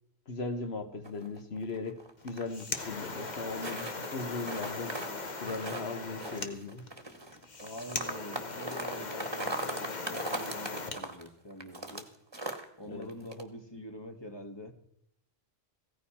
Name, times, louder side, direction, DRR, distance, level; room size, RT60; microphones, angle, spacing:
voice 1, 0.3-5.0 5.4-6.9 12.8-13.1, left 3 dB, 75° left, 1.5 m, -38 dB
sound 1, 1.0-2.9 3.2-4.1 4.4-5.9 6.2-12.0 12.3-12.6 13.0-13.4, right 2 dB, 25° right, 1.5 m, -39 dB
sound 2, 2.2-11.0, left 3 dB, 45° left, 1.2 m, -39 dB
voice 2, 7.6-12.1 12.8-14.7, equal, 25° left, 1.6 m, -45 dB
16.0 x 14.5 x 4.3 m
omnidirectional pair, 1.1 m